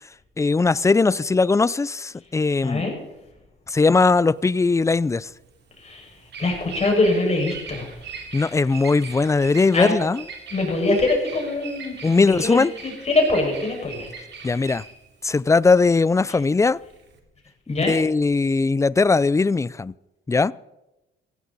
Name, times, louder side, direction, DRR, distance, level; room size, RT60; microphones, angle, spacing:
voice 1, 0.4-2.8 3.7-5.3 8.3-10.2 12.0-12.7 14.4-14.8 15.2-16.8 17.7-19.9 20.3-20.5, left 4 dB, 15° left, 0.4 m, -19 dB
voice 2, 2.6-2.9 5.8-6.1 6.4-7.9 9.7-9.9 10.5-14.1 17.7-18.0, left 2 dB, 35° left, 5.9 m, -23 dB
Bird vocalization bird call bird song, 3.9-17.2, right 5 dB, 60° right, 3.1 m, -40 dB
16.5 x 15.0 x 4.1 m
cardioid pair, 90°, 20 cm